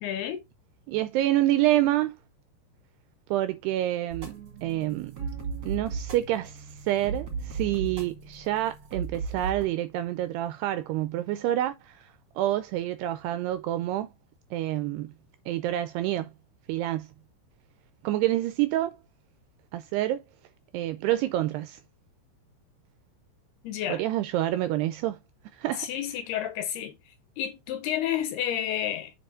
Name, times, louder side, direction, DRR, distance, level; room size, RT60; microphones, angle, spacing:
voice 1, 0.0-0.4 23.6-24.0 25.8-29.1, left 10 dB, 75° left, 2.8 m, -31 dB
voice 2, 0.9-2.2 3.3-4.3 4.6-5.1 5.6-14.1 14.5-15.1 15.5-16.3 16.7-17.1 18.0-19.0 19.7-20.2 20.7-21.8 23.9-25.2 25.5-25.9, right 14 dB, 85° right, 2.4 m, -27 dB
sound 1, 4.1-9.7, right 4 dB, 45° right, 1.4 m, -36 dB
7.7 x 4.8 x 3.7 m
omnidirectional pair, 5.2 m